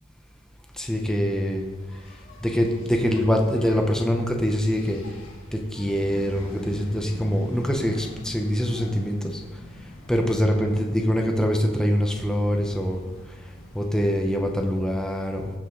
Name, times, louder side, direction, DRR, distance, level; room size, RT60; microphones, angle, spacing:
voice 1, 0.8-1.6 2.4-5.0 5.5-9.4 10.1-13.0 13.7-15.5, equal, 5° left, 1 dB, 0.8 m, -24 dB
Engine, 1.3-14.3, left 1 dB, 75° left, 1.9 m, -45 dB
16.5 x 5.5 x 3.8 m, 1.2 s
head